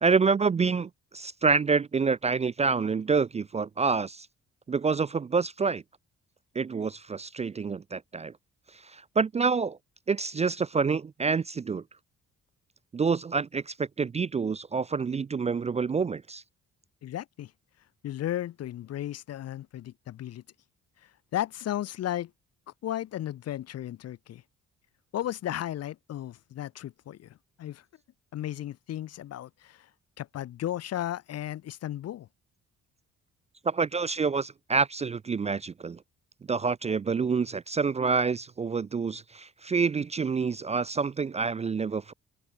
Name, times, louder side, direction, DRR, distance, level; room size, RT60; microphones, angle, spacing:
voice 1, 0.0-4.3 4.7-5.8 6.6-8.3 8.8-9.8 10.1-11.8 12.9-16.4 33.6-36.0 36.5-42.1, right 5 dB, 25° right, 0.4 m, -27 dB
voice 2, 17.0-17.5 18.0-20.4 21.0-22.3 22.8-24.4 25.1-27.8 28.3-29.9 30.2-32.3, left 12 dB, 55° left, 0.6 m, -35 dB
cardioid pair, 90°, 30 cm